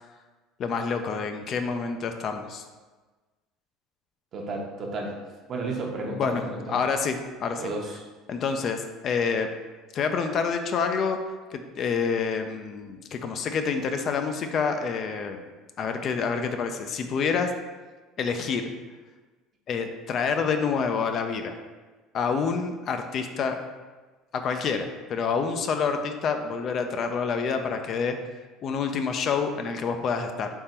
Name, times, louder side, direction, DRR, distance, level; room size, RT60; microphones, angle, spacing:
voice 1, 0.6-2.6 6.2-6.4 6.7-7.6 8.3-9.5 9.9-11.2 11.5-15.4 15.8-17.5 18.2-18.6 19.7-21.5 22.1-23.6 24.3-28.2 28.6-30.5, left 5 dB, 45° left, 6 dB, 0.4 m, -27 dB
voice 2, 4.3-5.2 5.5-6.8 7.6-8.1, right 3 dB, 40° right, 1 dB, 0.8 m, -33 dB
3.6 x 2.8 x 4.2 m, 1.3 s
supercardioid pair, 105°, 0 cm